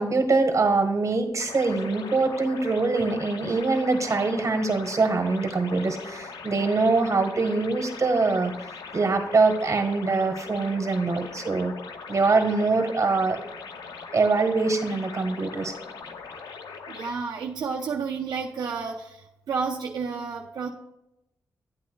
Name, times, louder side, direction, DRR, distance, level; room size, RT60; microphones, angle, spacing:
voice 1, 0.0-8.6 8.9-11.8 12.1-13.4 14.1-15.7, right 3 dB, 50° right, 6 dB, 1.5 m, -23 dB
sound 1, 1.4-17.1, left 5 dB, 85° left, 0.6 m, -41 dB
voice 2, 16.9-19.0 19.5-20.7, right 5 dB, 85° right, -1 dB, 0.7 m, -30 dB
11.0 x 8.4 x 2.3 m, 0.85 s
cardioid pair, 65°, 7 cm